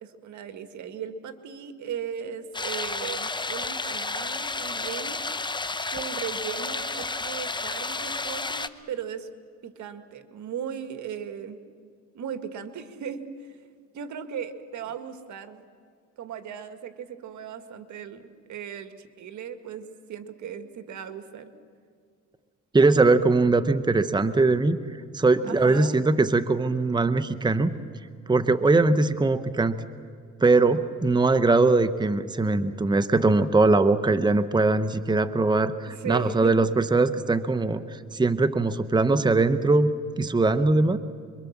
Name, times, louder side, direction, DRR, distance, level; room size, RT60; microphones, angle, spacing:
voice 1, 0.0-5.2 5.9-9.3 9.6-11.6 12.1-13.6 13.9-15.6 16.2-21.5 25.4-26.0 35.9-36.5, right 8 dB, 70° right, 9 dB, 1.8 m, -37 dB
sound 1, 2.5-8.7, left 3 dB, 15° left, 0.9 m, -31 dB
voice 2, 22.7-24.8 25.1-27.7 28.3-29.8 30.4-39.9 40.2-41.0, right 3 dB, 15° right, 11 dB, 1.0 m, -21 dB
26.0 x 23.5 x 7.3 m, 2.1 s
cardioid pair, 90°, 30 cm